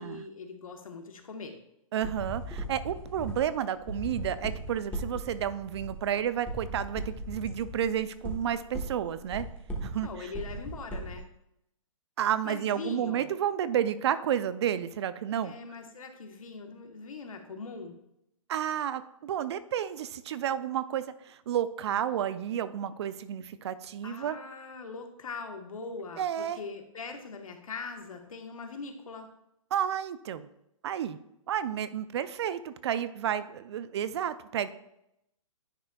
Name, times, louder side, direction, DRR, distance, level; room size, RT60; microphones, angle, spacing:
voice 1, 0.0-1.6 10.0-11.3 12.4-13.3 15.4-18.0 24.0-29.3, left 4 dB, 80° left, 5 dB, 1.2 m, -41 dB
voice 2, 1.9-9.5 9.8-10.3 12.2-15.5 18.5-24.4 26.2-26.6 29.7-30.5 30.8-31.2 31.5-34.7, right 9 dB, 50° right, 14 dB, 0.4 m, -31 dB
sound 1, 2.0-11.2, right 1 dB, 10° left, 1.1 m, -38 dB
9.8 x 5.5 x 2.3 m, 0.80 s
hypercardioid pair, 140°, 17 cm